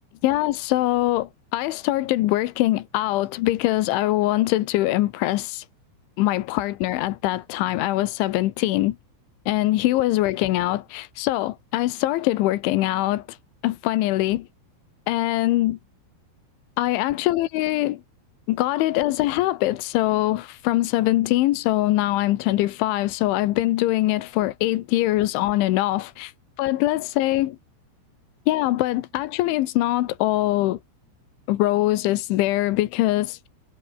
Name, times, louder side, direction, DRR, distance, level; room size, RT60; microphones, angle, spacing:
voice 1, 0.2-5.7 6.2-9.0 9.5-13.4 13.6-14.5 15.1-15.8 16.8-18.0 18.5-26.3 26.6-27.6 28.5-30.8 31.5-33.5, left 16 dB, 75° left, 3.4 m, -23 dB
omnidirectional pair, 5.7 m